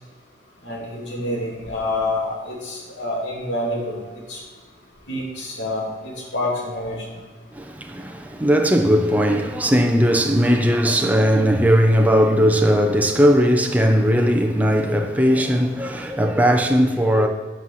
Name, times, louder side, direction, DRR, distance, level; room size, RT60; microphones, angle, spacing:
voice 1, 0.6-4.0 4.3-4.4 5.1-7.0, left 1 dB, 75° left, 3.1 m, -27 dB
voice 2, 7.5-17.3, equal, 10° right, 0.8 m, -18 dB
8.9 x 5.7 x 7.7 m
head